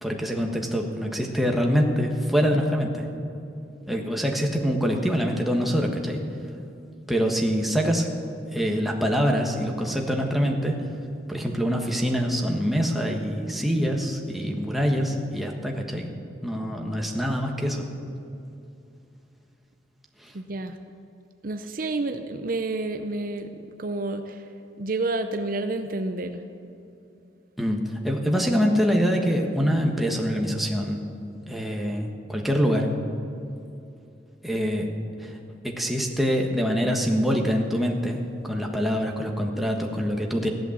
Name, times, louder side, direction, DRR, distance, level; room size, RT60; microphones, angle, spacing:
voice 1, 0.0-3.1 3.9-6.2 7.1-8.1 8.5-10.9 11.3-16.1 16.4-17.9 20.2-20.3 27.6-31.0 31.5-32.9 34.4-34.9 35.2-35.4 35.6-40.5, equal, ahead, 1 dB, 1.4 m, -25 dB
voice 2, 20.3-20.8 21.4-24.4 24.8-26.4, right 2 dB, 50° right, 7 dB, 0.6 m, -29 dB
15.0 x 11.0 x 7.2 m, 2.7 s
head